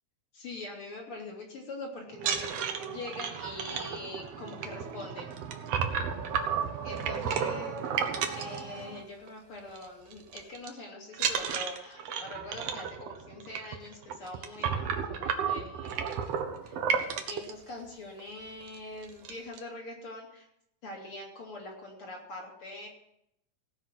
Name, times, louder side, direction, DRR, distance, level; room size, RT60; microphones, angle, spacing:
voice 1, 0.3-5.3 6.8-7.9 8.3-16.2 16.6-16.8 17.3-20.5 20.8-22.9, left 2 dB, 45° left, -1 dB, 3.2 m, -43 dB
sound 1, 2.1-9.3 9.6-9.9 10.1-10.7 11.1-17.5 18.2-18.3 18.6-18.8 19.0-19.6, right 7 dB, 65° right, 1.8 m, -33 dB
17.0 x 5.8 x 7.5 m, 0.79 s
omnidirectional pair, 3.7 m